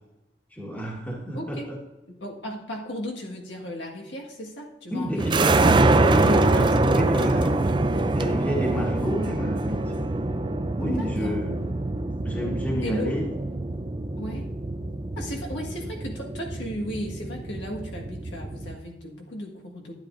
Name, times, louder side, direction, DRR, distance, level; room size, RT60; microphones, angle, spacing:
voice 1, 0.5-1.8 4.9-5.6 6.0-7.6 8.1-9.8 10.8-11.5 12.2-13.2, equal, 10° left, -1 dB, 1.6 m, -30 dB
voice 2, 1.3-1.6 2.2-5.4 6.5-6.7 7.3-7.6 10.9-11.4 12.8-13.2 14.2-14.5 15.2-19.9, equal, 75° left, -1 dB, 1.7 m, -36 dB
sound 1, 5.2-18.8, right 2 dB, 25° right, 0.4 m, -25 dB
12.0 x 10.0 x 2.6 m, 1.0 s
head